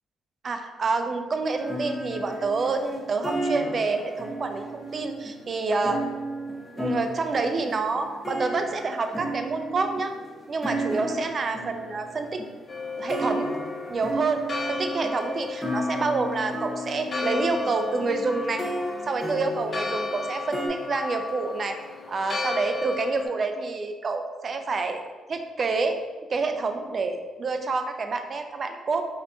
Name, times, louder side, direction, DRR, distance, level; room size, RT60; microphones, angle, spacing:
voice 1, 0.4-6.0 6.8-10.1 10.5-12.4 13.0-13.5 13.9-18.6 19.1-21.8 22.1-25.0 25.3-26.0 26.3-29.0, right 4 dB, 45° right, 6 dB, 0.4 m, -28 dB
sound 1, 1.6-20.7, equal, 10° left, 0.8 m, -34 dB
Church bell, 12.7-23.3, left 4 dB, 40° left, 0.6 m, -34 dB
3.9 x 2.7 x 3.4 m, 1.3 s
cardioid pair, 90°, 0 cm